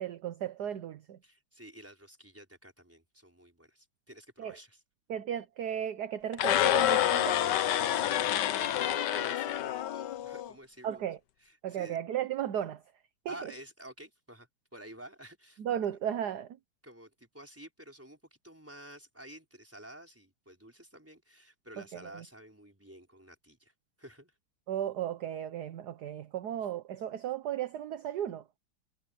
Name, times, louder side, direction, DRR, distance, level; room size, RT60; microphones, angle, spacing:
voice 1, 0.0-1.2 4.4-4.6 5.1-7.4 10.8-11.2 11.6-12.8 13.2-13.5 15.6-16.6 21.9-22.2 24.7-28.6, right 10 dB, 60° right, 1.2 m, -35 dB
voice 2, 1.2-4.8 7.9-11.1 11.4-12.0 13.3-15.6 16.8-23.7 24.0-24.3, right 1 dB, 5° right, 4.5 m, -50 dB
sound 1, 6.3-10.5, left 12 dB, 65° left, 1.2 m, -28 dB
omnidirectional pair, 2.4 m